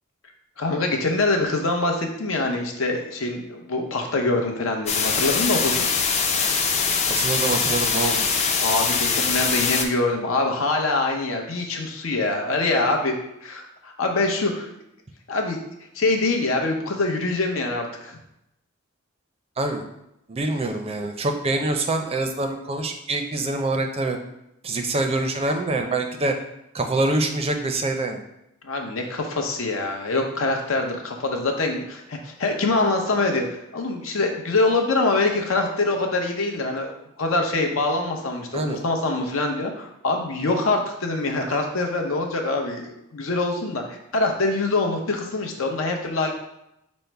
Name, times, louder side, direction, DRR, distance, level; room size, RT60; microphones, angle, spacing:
voice 1, 0.6-5.9 8.6-14.7 15.3-15.6 15.9-18.2 28.6-36.9 37.2-46.3, left 2 dB, 80° left, 2 dB, 0.7 m, -24 dB
sound 1, 4.9-9.8, left 5 dB, 35° left, 0.5 m, -22 dB
voice 2, 7.1-8.2 19.6-19.9 20.3-24.2 24.6-26.3 26.7-28.2 38.5-38.8, right 2 dB, 30° right, 5 dB, 0.4 m, -25 dB
5.3 x 2.1 x 4.5 m, 0.83 s
head